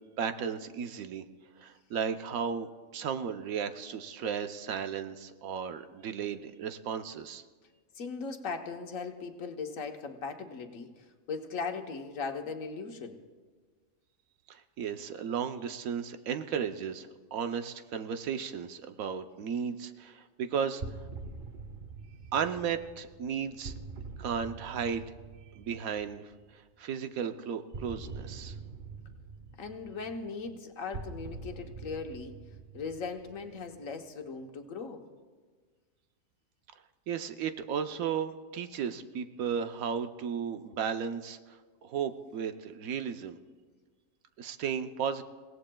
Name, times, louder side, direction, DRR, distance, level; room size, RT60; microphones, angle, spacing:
voice 1, 0.2-1.2 1.6-7.4 14.5-20.8 22.3-23.7 24.2-25.0 25.5-28.6 37.1-43.4 44.4-45.2, right 7 dB, 85° right, 8 dB, 1.2 m, -35 dB
voice 2, 8.0-13.2 29.6-32.4 32.7-35.0, left 4 dB, 70° left, 4 dB, 1.4 m, -38 dB
sound 1, 20.8-26.6 27.7-34.0, right 4 dB, 45° right, 0.9 m, -45 dB
30.0 x 17.0 x 2.3 m, 1.5 s
omnidirectional pair, 1.4 m